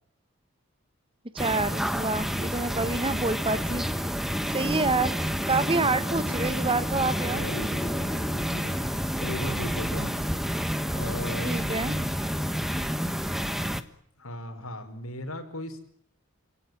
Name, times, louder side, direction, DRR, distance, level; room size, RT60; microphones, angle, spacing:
voice 1, 1.3-3.9 4.5-5.1 5.4-7.4 11.4-12.0, right 3 dB, 25° right, 12 dB, 1.3 m, -27 dB
sound 1, 1.4-13.8, equal, ahead, 1.3 m, -29 dB
voice 2, 5.6-6.0 7.2-8.8 9.2-10.1 10.9-12.1 14.2-15.8, equal, 80° left, 5 dB, 5.3 m, -37 dB
28.0 x 18.0 x 9.5 m, 0.67 s
head